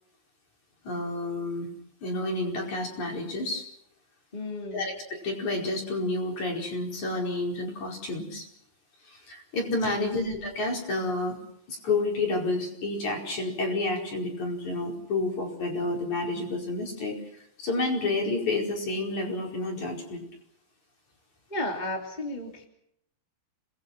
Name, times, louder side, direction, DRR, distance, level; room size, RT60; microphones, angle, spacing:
voice 1, 0.8-1.7 2.0-3.7 4.7-8.5 9.1-11.4 11.7-17.2 17.6-20.2, left 2 dB, 35° left, 1 dB, 5.8 m, -30 dB
voice 2, 4.3-4.9 9.9-10.2 21.5-22.6, left 1 dB, 15° left, 2 dB, 2.1 m, -33 dB
28.5 x 21.0 x 6.1 m, 0.73 s
omnidirectional pair, 5.8 m